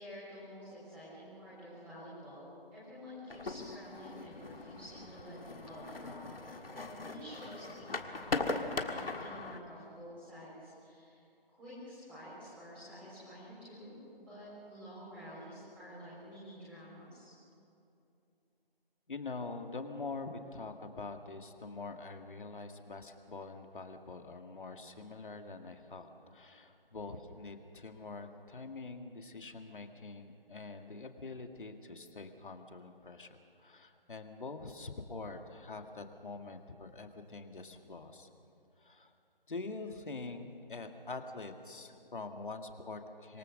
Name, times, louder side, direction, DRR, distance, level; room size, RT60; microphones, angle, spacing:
voice 1, 0.0-11.2 11.5-17.3, equal, 5° right, -11 dB, 4.0 m, -50 dB
sound 1, 3.3-9.6, left 3 dB, 75° left, 1.7 m, -40 dB
voice 2, 19.1-38.3 38.8-39.1 39.5-43.4, left 3 dB, 60° left, 5 dB, 2.1 m, -45 dB
26.0 x 18.0 x 6.5 m, 2.7 s
figure-of-eight pair, 160°, 29 cm